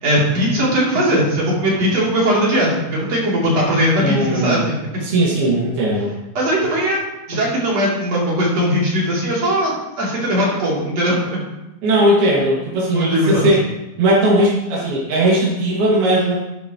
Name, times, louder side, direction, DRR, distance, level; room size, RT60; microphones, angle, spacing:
voice 1, 0.0-4.7 6.4-7.0 7.3-11.4 12.9-13.5, equal, 45° right, -6 dB, 4.1 m, -19 dB
voice 2, 4.0-4.7 5.0-6.1 11.8-13.6 14.0-16.4, right 1 dB, 80° right, -6 dB, 4.1 m, -18 dB
12.5 x 10.5 x 3.1 m, 0.97 s
omnidirectional pair, 4.3 m